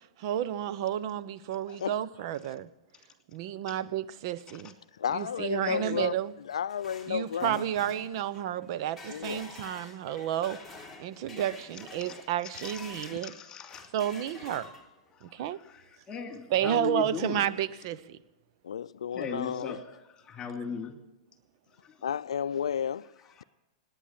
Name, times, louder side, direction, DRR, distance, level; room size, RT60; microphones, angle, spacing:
voice 1, 0.2-2.7 3.3-4.7 5.1-6.3 7.1-10.6 11.0-13.3 13.9-14.7 15.4-15.6 16.5-18.2, right 10 dB, 55° right, 0.8 m, -31 dB
voice 2, 5.0-6.2 6.5-7.5 9.1-9.6 13.1-13.2 18.6-19.8 22.0-23.1, left 8 dB, 85° left, 0.4 m, -32 dB
voice 3, 5.6-6.1 7.4-7.6 12.0-12.2 12.6-13.9 15.1-17.4 19.1-19.8 20.2-20.9 21.8-22.0, left 6 dB, 25° left, 2.8 m, -39 dB
sound 1, 6.3-13.3 13.7-15.1, left 3 dB, ahead, 3.0 m, -48 dB
18.5 x 9.8 x 7.5 m
hypercardioid pair, 120°, 3 cm